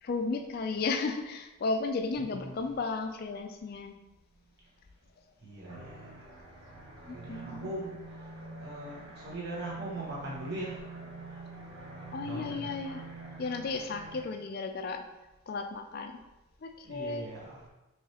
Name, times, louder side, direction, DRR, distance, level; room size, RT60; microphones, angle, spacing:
voice 1, 0.0-4.0 7.1-7.7 8.5-8.6 12.1-13.0 13.4-15.0 15.5-16.2 16.6-17.3, left 4 dB, 45° left, 6 dB, 0.4 m, -34 dB
voice 2, 5.4-5.9 7.1-8.0 8.6-10.8 11.3-11.4 12.2-12.7 16.8-17.6, right 1 dB, 50° right, -6 dB, 1.1 m, -40 dB
sound 1, 5.7-14.2, right 3 dB, 75° right, 1.1 m, -46 dB
4.7 x 3.2 x 2.9 m, 1.0 s
head